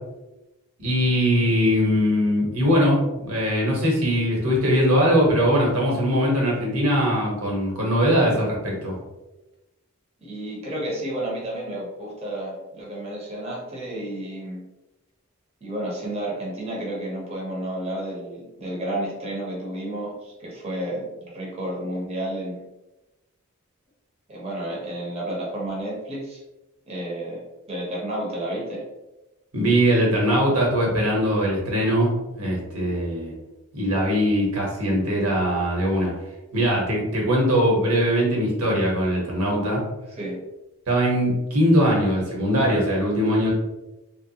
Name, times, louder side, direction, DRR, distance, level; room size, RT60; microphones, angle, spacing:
voice 1, 0.8-9.0 29.5-33.3 33.7-36.1 36.5-39.8 40.9-43.5, equal, 85° right, -3 dB, 1.2 m, -21 dB
voice 2, 10.2-14.6 15.6-22.6 24.3-26.4 26.9-27.4 27.7-28.8 40.2-40.4, right 1 dB, 30° right, -4 dB, 0.7 m, -31 dB
3.0 x 2.4 x 2.8 m, 1.0 s
head